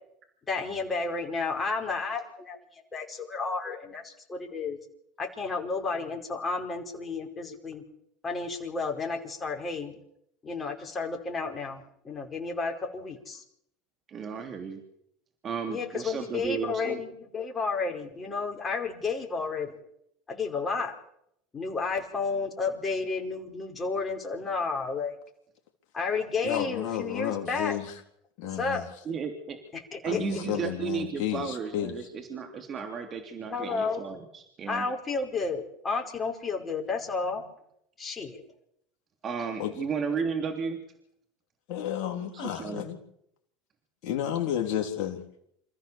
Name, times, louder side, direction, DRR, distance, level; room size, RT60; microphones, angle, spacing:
voice 1, 0.5-4.8 5.2-7.8 8.2-9.9 10.4-13.4 15.7-19.8 20.3-20.9 21.5-25.1 25.9-27.8 28.5-28.9 29.9-30.4 33.5-34.0 34.7-37.5 38.0-38.4, left 4 dB, 25° left, 1 dB, 5.0 m, -32 dB
voice 2, 14.1-14.8 15.4-17.0 29.0-29.6 30.0-34.9 39.2-40.8 42.4-42.8, right 6 dB, 40° right, 4 dB, 3.3 m, -34 dB
voice 3, 26.4-28.0 28.4-28.9 30.0-32.1 39.6-39.7 41.7-43.0 44.0-45.2, left 10 dB, 60° left, 2 dB, 3.5 m, -32 dB
27.5 x 15.0 x 7.1 m, 0.75 s
hypercardioid pair, 85°, 0 cm